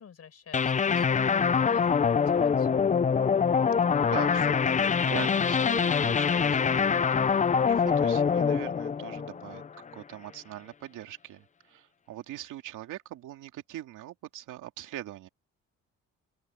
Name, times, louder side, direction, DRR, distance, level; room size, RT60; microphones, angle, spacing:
voice 1, 0.0-2.9, left 7 dB, 55° left, 4.8 m, -49 dB
sound 1, 0.5-9.9, left 6 dB, 25° left, 0.5 m, -24 dB
voice 2, 3.8-15.3, right 14 dB, 85° right, 2.5 m, -42 dB
open air
cardioid pair, 90°, 30 cm